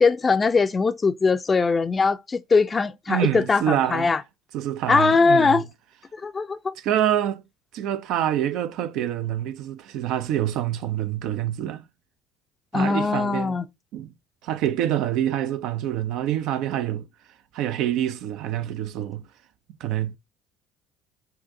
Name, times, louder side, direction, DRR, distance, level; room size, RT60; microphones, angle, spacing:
voice 1, 0.0-4.2 4.9-5.6 6.1-6.7 12.7-13.7, left 4 dB, 25° left, 0.5 m, -21 dB
voice 2, 3.1-4.1 4.5-5.6 6.8-7.4 7.7-11.8 12.7-13.6 13.9-14.1 14.4-17.1 17.5-19.3 19.8-20.2, right 11 dB, 60° right, 0.4 m, -26 dB
5.7 x 2.5 x 2.6 m
figure-of-eight pair, 55°, 0 cm